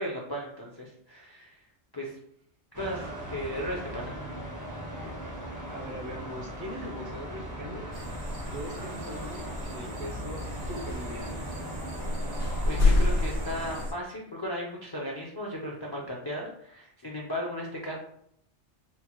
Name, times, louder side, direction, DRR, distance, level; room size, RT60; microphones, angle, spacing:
voice 1, 0.0-1.5 1.9-2.2 2.8-4.2 12.7-17.9, equal, 35° left, -3 dB, 0.3 m, -36 dB
sound 1, 2.7-13.9, equal, 25° right, 0.5 m, -38 dB
voice 2, 5.7-7.9 8.5-11.5, equal, 55° right, 0 dB, 0.9 m, -41 dB
sound 2, 7.9-13.9, equal, 85° right, 1.0 m, -33 dB
sound 3, 12.4-13.6, left 3 dB, 70° left, 0.8 m, -25 dB
4.2 x 2.0 x 2.9 m, 0.69 s
omnidirectional pair, 1.2 m